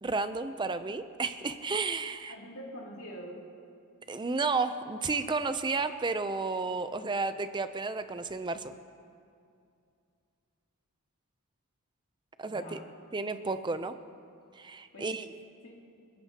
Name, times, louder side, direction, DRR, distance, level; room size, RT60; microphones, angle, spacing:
voice 1, 0.0-2.3 4.1-8.7 12.4-12.8 13.1-14.0 14.5-15.3, right 3 dB, 20° right, 11 dB, 0.5 m, -32 dB
voice 2, 2.3-3.4 12.5-12.9 14.9-15.3 15.6-15.8, equal, 70° left, -3 dB, 2.6 m, -45 dB
30.0 x 10.5 x 2.9 m, 2.4 s
head